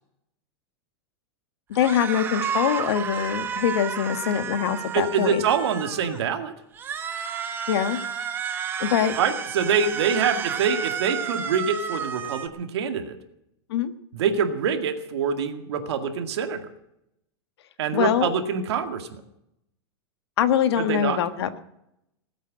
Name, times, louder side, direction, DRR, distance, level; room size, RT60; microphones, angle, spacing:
voice 1, 1.7-5.4 7.7-8.0 8.8-9.2 13.7-13.9 17.9-18.3 20.4-21.6, left 9 dB, 70° left, 10 dB, 1.4 m, -23 dB
sound 1, 1.7-6.2 6.7-12.5, right 7 dB, 15° right, 0.9 m, -31 dB
voice 2, 4.9-6.5 9.2-13.2 14.1-16.6 17.8-19.2 20.8-21.2, right 6 dB, 75° right, 6 dB, 2.1 m, -25 dB
19.0 x 8.4 x 7.4 m, 0.80 s
supercardioid pair, 165°, 14 cm